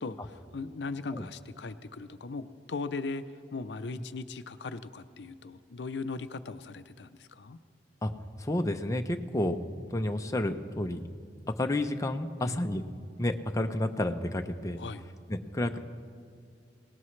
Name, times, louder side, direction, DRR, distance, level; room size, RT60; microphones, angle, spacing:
voice 1, 0.0-3.2 3.5-7.6 12.4-12.6 14.8-15.0, left 3 dB, 70° left, 11 dB, 0.6 m, -38 dB
voice 2, 8.4-11.1 11.6-12.8 13.2-14.8 15.3-15.8, left 1 dB, 20° left, 5 dB, 0.6 m, -30 dB
24.5 x 18.5 x 3.2 m, 2.2 s
head